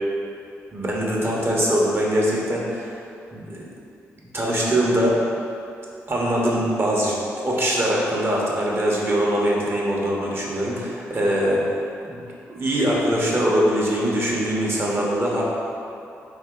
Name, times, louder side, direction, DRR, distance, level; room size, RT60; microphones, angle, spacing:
voice 1, 0.7-3.0 3.3-3.6 4.3-5.2 6.1-7.2 7.4-11.6 12.1-12.2 12.5-15.4, equal, 35° right, -4 dB, 1.0 m, -22 dB
3.6 x 2.8 x 3.7 m, 2.7 s
hypercardioid pair, 40°, 7 cm